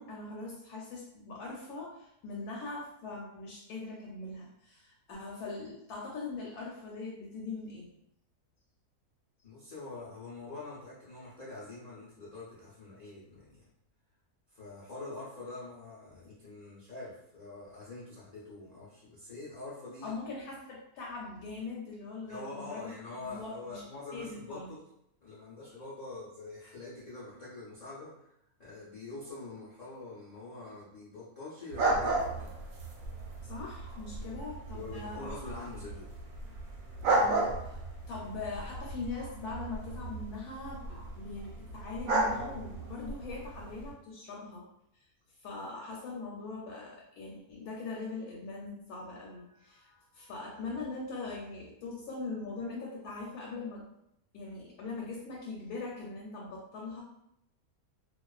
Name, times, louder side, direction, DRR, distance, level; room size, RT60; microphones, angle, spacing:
voice 1, 0.0-7.9 20.0-22.9 23.2-23.9 24.1-24.7 33.4-35.3 37.0-37.8 38.1-44.7 45.4-53.8 54.3-57.0, left 3 dB, 80° left, -3 dB, 1.1 m, -41 dB
voice 2, 9.4-13.6 14.5-20.1 22.3-24.8 25.2-28.3 28.6-32.6 34.2-34.4 34.7-36.1, left 3 dB, 50° left, -10 dB, 0.4 m, -45 dB
sound 1, 31.7-43.9, right 2 dB, 70° right, 0.9 m, -34 dB
2.4 x 2.3 x 2.3 m, 0.79 s
omnidirectional pair, 1.6 m